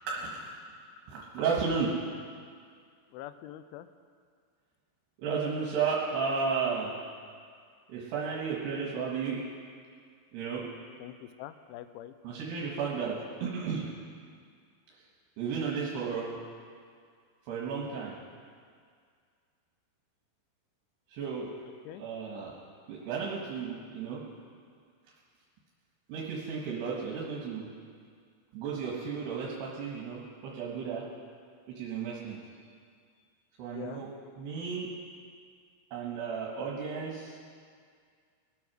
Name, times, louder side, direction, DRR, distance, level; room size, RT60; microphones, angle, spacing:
voice 1, 0.1-0.6 1.1-1.9 5.2-7.0 7.9-9.4 10.3-10.7 12.2-13.9 15.4-16.4 17.5-18.2 21.1-21.5 21.9-22.5 22.9-24.2 26.1-27.7 28.5-31.1 31.7-32.4 33.6-34.1 34.4-34.9 35.9-37.4, right 5 dB, 65° right, -4 dB, 3.5 m, -33 dB
voice 2, 3.1-3.9 11.0-12.1 21.9-22.0 33.7-34.0, left 13 dB, 85° left, 12 dB, 3.0 m, -44 dB
21.5 x 8.5 x 6.3 m, 2.1 s
omnidirectional pair, 5.4 m